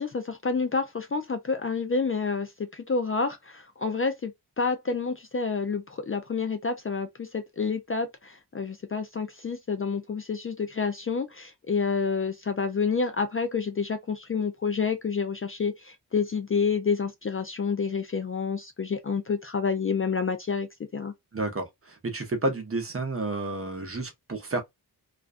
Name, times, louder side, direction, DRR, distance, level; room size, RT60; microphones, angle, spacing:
voice 1, 0.0-4.3 4.6-20.7 20.9-21.1, left 5 dB, 35° left, 0.4 m, -29 dB
voice 2, 21.3-24.6, right 2 dB, 35° right, 0.7 m, -31 dB
2.4 x 2.2 x 2.4 m
wide cardioid pair, 85°, 40 cm